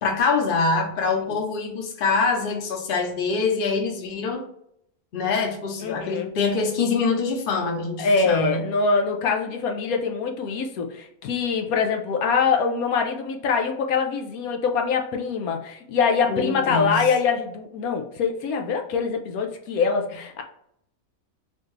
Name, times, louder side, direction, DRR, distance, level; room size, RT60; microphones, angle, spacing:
voice 1, 0.0-4.4 5.1-8.6 16.3-17.1, left 4 dB, 45° left, 2 dB, 0.9 m, -24 dB
voice 2, 5.8-6.3 8.0-20.4, left 5 dB, 90° left, 3 dB, 1.1 m, -24 dB
4.4 x 2.4 x 3.1 m, 0.72 s
omnidirectional pair, 1.5 m